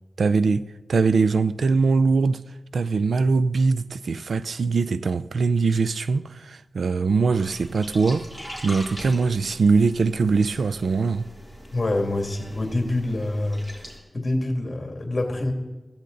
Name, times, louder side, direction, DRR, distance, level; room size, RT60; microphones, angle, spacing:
voice 1, 0.2-0.6 0.9-2.4 2.7-8.3 8.6-11.3, right 4 dB, 85° right, 0.5 m, -22 dB
sound 1, 7.3-14.0, equal, 20° right, 3.7 m, -41 dB
voice 2, 11.7-13.6 14.1-15.5, left 2 dB, 35° left, 2.4 m, -26 dB
15.0 x 15.0 x 4.0 m
wide cardioid pair, 90°, 0 cm